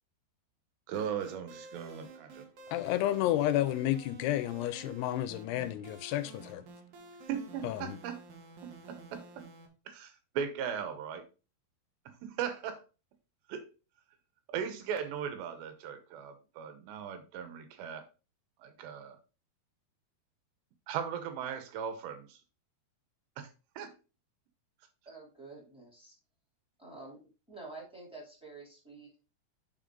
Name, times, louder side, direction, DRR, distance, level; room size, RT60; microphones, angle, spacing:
sound 1, 0.9-9.7, right 3 dB, 60° right, 2.1 m, -51 dB
voice 1, 0.9-2.5 7.3-8.2 8.6-9.5 9.9-11.2 12.2-12.8 13.5-13.7 14.5-18.1 18.6-19.2 20.9-22.4 23.4-23.5 23.8-23.9, right 8 dB, 85° right, 3.2 m, -38 dB
voice 2, 2.7-6.6 7.6-8.0, left 14 dB, 85° left, 2.6 m, -31 dB
voice 3, 25.0-26.1 26.8-27.2 27.5-29.2, right 3 dB, ahead, 1.9 m, -48 dB
9.1 x 4.7 x 3.7 m
omnidirectional pair, 4.8 m